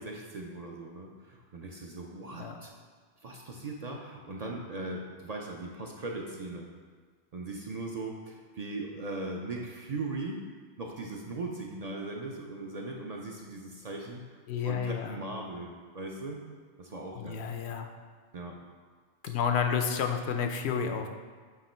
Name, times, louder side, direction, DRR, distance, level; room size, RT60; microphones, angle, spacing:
voice 1, 0.0-2.7 3.2-6.7 7.3-10.4 10.8-14.4 14.6-16.4 16.8-17.4 18.3-18.6, right 2 dB, 50° right, -1 dB, 0.5 m, -39 dB
voice 2, 14.5-15.1 17.2-17.9 19.2-21.1, left 7 dB, 80° left, 5 dB, 0.8 m, -30 dB
8.3 x 2.9 x 4.3 m, 1.5 s
omnidirectional pair, 1.1 m